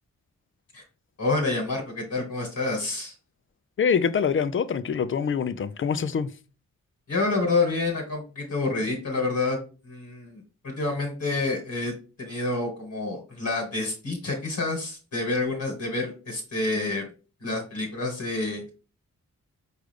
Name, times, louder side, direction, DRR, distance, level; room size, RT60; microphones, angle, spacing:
voice 1, 1.2-3.1 7.1-9.6 9.8-11.9 12.2-17.0 17.4-18.7, left 3 dB, 60° left, 1.4 m, -28 dB
voice 2, 3.8-6.3, left 6 dB, 40° left, 0.4 m, -25 dB
4.8 x 2.4 x 3.2 m
cardioid pair, 50°, 33 cm